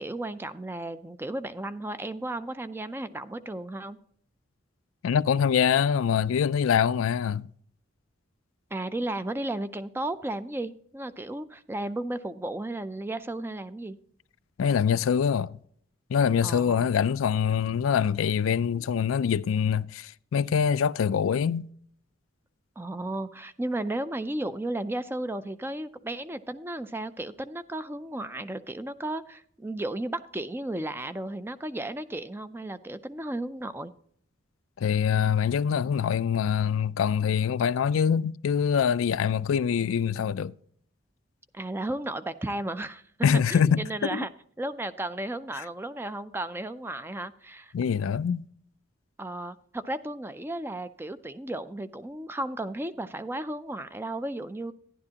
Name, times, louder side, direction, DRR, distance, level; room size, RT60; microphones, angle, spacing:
voice 1, 0.0-4.0 8.7-14.0 16.4-16.9 22.8-33.9 41.5-43.0 43.5-44.3 44.6-47.7 49.2-54.7, right 1 dB, 10° right, 0.4 m, -34 dB
voice 2, 5.0-7.5 14.6-15.6 16.1-21.7 34.8-40.5 43.2-44.3 47.7-48.5, left 7 dB, 90° left, 0.4 m, -24 dB
12.0 x 10.5 x 2.8 m
head